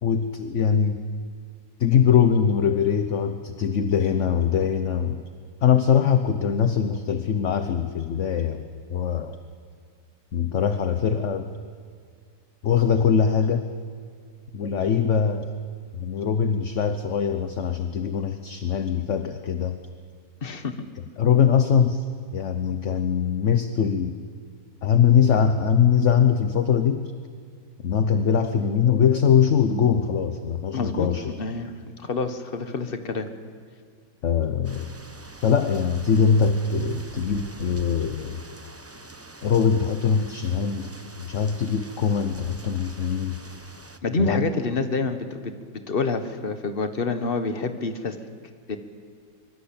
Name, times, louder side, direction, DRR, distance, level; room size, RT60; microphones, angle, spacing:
voice 1, 0.0-1.0 1.8-5.2 5.6-9.4 10.3-11.5 12.6-13.7 14.5-15.5 15.9-19.8 21.2-22.0 22.3-24.2 24.8-27.1 27.8-31.4 34.2-34.9 35.4-38.4 39.4-40.9 41.2-43.4 44.2-44.5, left 7 dB, 50° left, 9 dB, 1.1 m, -22 dB
voice 2, 20.4-20.7 30.7-33.3 44.0-45.5 45.9-48.2 48.7-48.8, left 3 dB, 35° left, 9 dB, 1.5 m, -27 dB
sound 1, 34.6-44.0, right 2 dB, 15° right, 0.5 m, -45 dB
24.5 x 23.5 x 8.7 m, 2.1 s
omnidirectional pair, 1.9 m